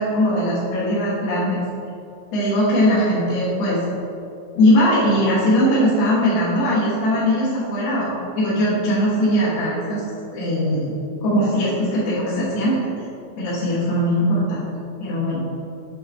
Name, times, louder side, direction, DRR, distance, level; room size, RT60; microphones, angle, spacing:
voice 1, 0.0-1.6 2.3-3.8 4.6-10.0 10.3-10.9 11.2-12.9 13.4-14.7 15.0-15.4, equal, 70° left, -10 dB, 3.1 m, -20 dB
8.1 x 4.3 x 3.4 m, 2.8 s
omnidirectional pair, 5.2 m